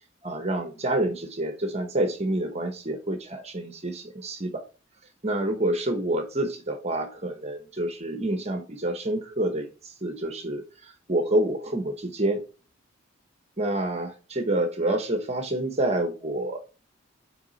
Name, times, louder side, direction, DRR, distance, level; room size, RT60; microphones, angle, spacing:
voice 1, 0.2-4.6 5.2-12.4 13.6-16.6, right 1 dB, 35° right, 5 dB, 1.0 m, -28 dB
6.1 x 4.9 x 4.1 m, 0.34 s
head